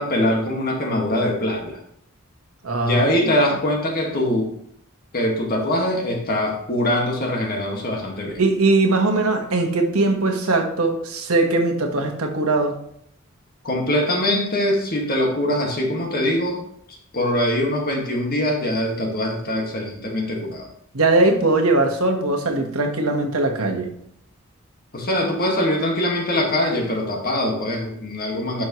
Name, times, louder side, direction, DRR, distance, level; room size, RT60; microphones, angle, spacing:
voice 1, 0.0-1.8 2.8-4.5 5.1-8.4 13.6-16.6 16.9-20.7 24.9-28.7, left 1 dB, 45° left, 0 dB, 1.9 m, -23 dB
voice 2, 2.6-3.3 8.4-12.8 20.9-23.9, right 2 dB, 85° right, 3 dB, 1.4 m, -20 dB
11.0 x 6.3 x 3.1 m, 0.68 s
head